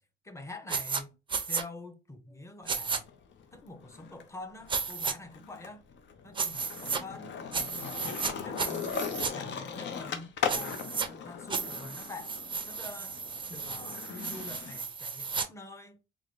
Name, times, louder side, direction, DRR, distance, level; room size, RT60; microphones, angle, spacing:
voice 1, 0.2-1.2 1.5-3.1 3.5-5.8 6.2-7.7 8.0-12.3 12.7-13.2 13.5-16.0, left 2 dB, 15° left, 0.7 m, -46 dB
sound 1, 0.7-1.0 1.3-1.6 2.7-3.0 4.7-5.1 6.4-7.0 7.5-8.3 8.6-9.3 10.5-11.1 11.5-15.5, right 5 dB, 25° right, 0.4 m, -34 dB
Skateboard, 2.6-4.2 4.6-14.8, left 7 dB, 65° left, 0.7 m, -39 dB
3.7 x 2.1 x 3.0 m
cardioid pair, 90°, 20 cm